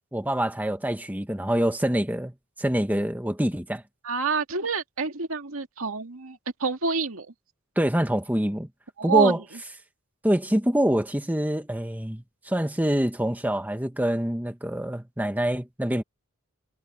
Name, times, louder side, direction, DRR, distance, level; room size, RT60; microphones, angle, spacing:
voice 1, 0.1-2.3 2.6-3.8 7.8-8.7 9.0-9.4 10.2-16.0, equal, 10° right, 1.5 m, -25 dB
voice 2, 4.0-7.3 9.0-9.4, right 5 dB, 70° right, 2.3 m, -27 dB
head